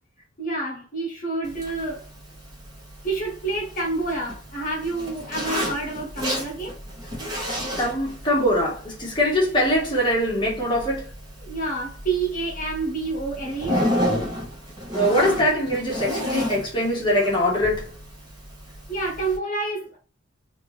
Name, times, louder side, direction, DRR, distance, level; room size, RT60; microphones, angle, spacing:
voice 1, 0.4-2.1 3.0-6.7 11.4-13.8 18.9-20.0, right 3 dB, 40° left, 1.1 m, -28 dB
Zipper (clothing), 1.4-19.4, equal, 20° right, 1.3 m, -32 dB
voice 2, 7.5-11.0 14.9-17.9, equal, 25° left, 1.2 m, -22 dB
3.5 x 2.6 x 3.2 m
head